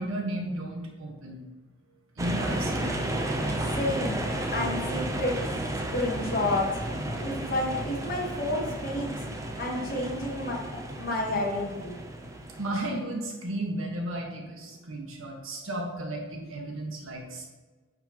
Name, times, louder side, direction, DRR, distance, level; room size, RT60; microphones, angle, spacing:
voice 1, 0.0-1.4 2.1-3.0 12.6-17.5, right 1 dB, 85° right, 1 dB, 1.4 m, -34 dB
sound 1, 2.2-13.0, right 1 dB, 15° right, 0.6 m, -33 dB
voice 2, 3.7-4.3 4.5-5.4 5.9-6.7 7.2-9.1 9.6-10.6 11.0-11.9, left 1 dB, 45° left, -2 dB, 1.2 m, -30 dB
9.0 x 5.6 x 3.0 m, 1.3 s
head